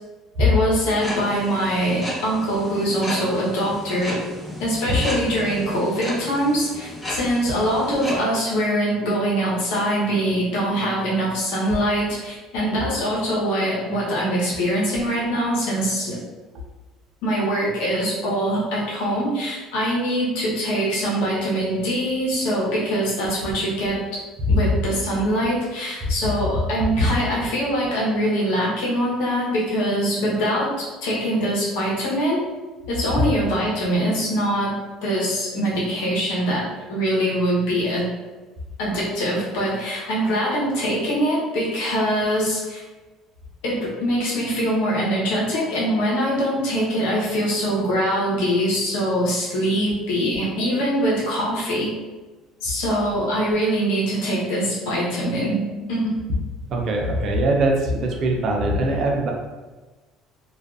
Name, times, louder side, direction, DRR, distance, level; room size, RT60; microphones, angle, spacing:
voice 1, 0.4-4.2 4.6-16.2 17.2-24.0 24.5-32.4 32.9-38.0 38.8-42.8 43.6-51.9 52.6-56.1, equal, 85° left, -5 dB, 0.9 m, -23 dB
sound 1, 0.9-8.2, left 1 dB, 15° left, 0.9 m, -34 dB
voice 2, 56.7-59.3, right 1 dB, 55° right, 1 dB, 0.5 m, -22 dB
2.4 x 2.3 x 2.4 m, 1.2 s
supercardioid pair, 100°, 0 cm